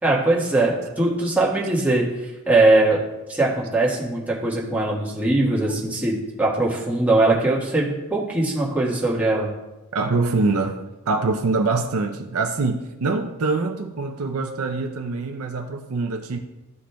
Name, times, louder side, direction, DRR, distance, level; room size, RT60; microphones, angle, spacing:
voice 1, 0.0-3.0 3.3-9.5, right 2 dB, 5° right, -5 dB, 1.4 m, -21 dB
voice 2, 9.9-10.8 11.1-16.4, right 3 dB, 70° right, 5 dB, 0.5 m, -24 dB
13.0 x 5.1 x 2.2 m, 1.0 s
head